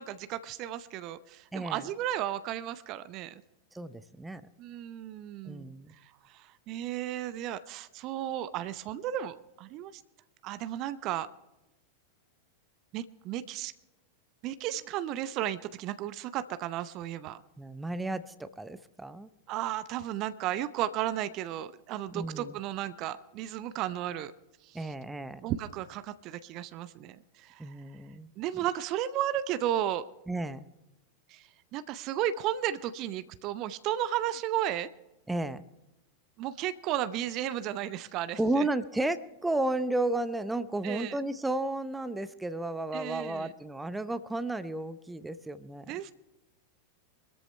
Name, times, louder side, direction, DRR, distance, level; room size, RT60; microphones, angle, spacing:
voice 1, 0.0-3.4 4.6-5.7 6.3-10.0 10.4-11.3 12.9-13.7 14.4-17.4 19.5-24.3 24.6-24.9 25.4-27.8 28.4-30.0 31.3-34.9 36.4-38.7 40.8-41.2 42.9-43.5 45.9-46.1, right 12 dB, 40° right, 14 dB, 0.7 m, -34 dB
voice 2, 1.5-1.9 3.7-4.4 5.5-5.9 17.6-19.3 22.1-22.6 24.7-25.5 27.6-28.3 30.3-30.6 35.3-35.7 38.4-45.9, right 2 dB, 5° right, 13 dB, 0.8 m, -33 dB
24.5 x 13.5 x 3.3 m, 0.94 s
figure-of-eight pair, 90°, 0 cm